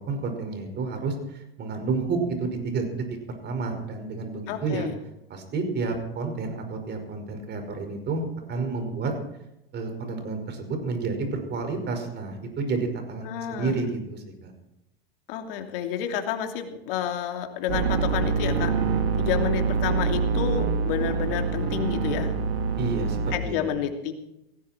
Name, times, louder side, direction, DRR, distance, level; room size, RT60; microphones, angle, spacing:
voice 1, 0.0-4.9 5.3-9.1 9.7-14.5 22.8-23.2 23.4-23.6, right 4 dB, 35° right, 5 dB, 5.4 m, -30 dB
voice 2, 4.5-4.9 13.2-13.8 15.3-18.8 19.2-22.3 23.3-24.1, left 9 dB, 65° left, 5 dB, 2.8 m, -30 dB
sound 1, 17.7-23.4, right 5 dB, 75° right, 2.3 m, -25 dB
18.5 x 16.0 x 4.5 m, 0.86 s
hypercardioid pair, 100°, 30 cm